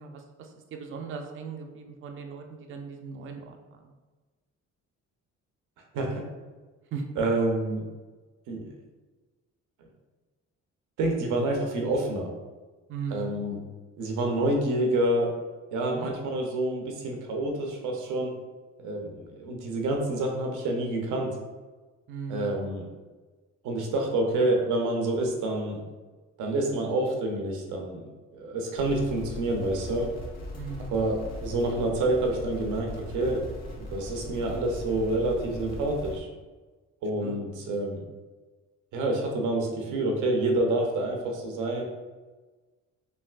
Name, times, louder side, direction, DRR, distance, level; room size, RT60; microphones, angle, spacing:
voice 1, 0.0-3.9 6.9-7.0 12.9-13.3 15.9-16.1 22.1-22.6 30.6-31.0 37.2-37.5, right 5 dB, 45° right, 3 dB, 0.4 m, -38 dB
voice 2, 5.9-6.3 7.2-7.8 8.5-8.7 11.0-12.3 13.1-13.6 14.0-15.3 15.7-18.3 18.8-21.4 22.3-22.9 23.6-25.8 26.4-30.1 30.9-33.4 33.8-36.3 37.0-38.0 38.9-41.8, right 2 dB, 85° right, 1 dB, 0.6 m, -28 dB
sound 1, 28.7-36.2, equal, 60° left, 1.0 m, -40 dB
3.3 x 2.6 x 2.4 m, 1.3 s
cardioid pair, 90°, 30 cm